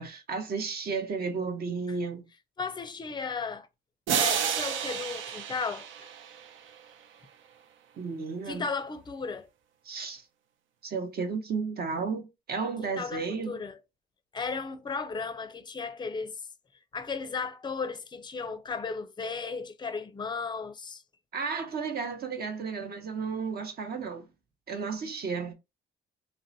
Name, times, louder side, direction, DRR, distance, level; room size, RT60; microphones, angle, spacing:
voice 1, 0.0-2.2 8.0-8.7 9.8-10.3 10.8-13.6 21.3-24.2 24.7-25.5, right 5 dB, 50° right, 0.8 m, -33 dB
voice 2, 2.6-3.7 4.1-6.1 8.5-9.5 12.8-13.8 14.3-16.4 16.9-21.0, left 4 dB, 20° left, 0.5 m, -35 dB
sound 1, 4.1-6.7, right 8 dB, 75° right, 0.5 m, -30 dB
3.7 x 2.1 x 2.6 m
cardioid pair, 90°, 20 cm